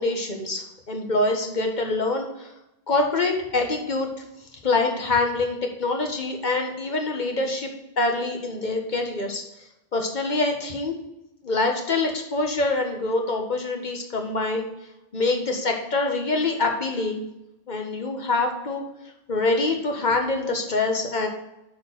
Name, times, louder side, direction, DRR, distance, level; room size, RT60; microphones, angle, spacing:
voice 1, 0.0-2.5 2.9-4.2 4.6-7.7 8.0-9.4 9.9-10.9 11.4-14.7 15.1-17.2 17.7-18.8 19.3-21.3, left 3 dB, 45° left, 3 dB, 1.4 m, -25 dB
8.3 x 4.6 x 5.8 m, 0.90 s
omnidirectional pair, 1.1 m